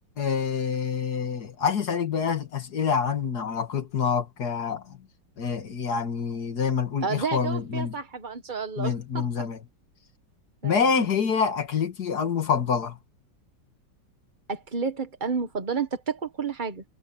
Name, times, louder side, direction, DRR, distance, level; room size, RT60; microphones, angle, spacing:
voice 1, 0.2-5.0 5.4-7.9 8.8-9.6 10.6-13.0, left 6 dB, 50° left, 2.2 m, -26 dB
voice 2, 7.0-9.5 10.6-11.1 14.5-16.8, right 5 dB, 30° right, 0.9 m, -31 dB
omnidirectional pair, 2.3 m